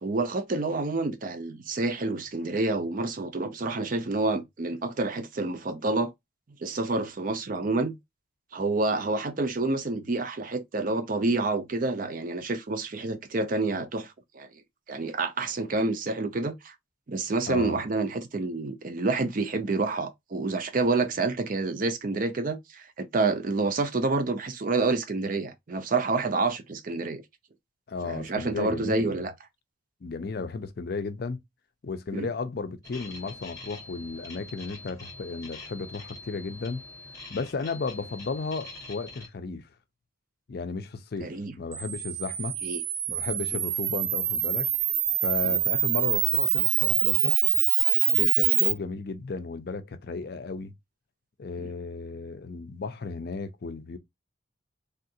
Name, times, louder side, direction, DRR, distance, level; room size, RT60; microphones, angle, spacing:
voice 1, 0.0-6.1 6.6-8.0 8.5-14.5 14.9-16.7 17.1-27.2 28.0-29.3 32.1-32.3 41.2-41.5 42.6-42.8 45.4-45.5 48.2-48.3 51.6-51.7, right 3 dB, 40° right, 0.5 m, -28 dB
voice 2, 17.5-17.8 27.9-29.2 30.0-31.4 31.8-36.8 37.3-39.7 40.5-41.3 41.6-42.6 43.1-44.7 45.2-47.4 48.1-50.7 51.4-54.0, left 4 dB, 50° left, 0.5 m, -34 dB
sound 1, 32.8-39.3, left 2 dB, 15° left, 0.8 m, -44 dB
Camera, 41.7-48.7, right 11 dB, 90° right, 0.5 m, -25 dB
3.5 x 2.4 x 2.7 m
head